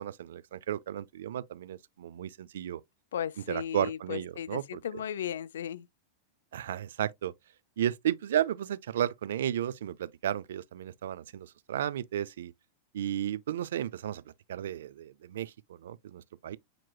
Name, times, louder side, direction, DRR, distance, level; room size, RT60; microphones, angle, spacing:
voice 1, 0.0-2.8 3.5-4.8 6.5-7.3 7.8-12.5 12.9-14.2 14.5-16.6, right 11 dB, 80° right, 0.4 m, -33 dB
voice 2, 3.1-5.9, left 9 dB, 85° left, 0.4 m, -36 dB
7.6 x 3.0 x 2.2 m
hypercardioid pair, 120°, 0 cm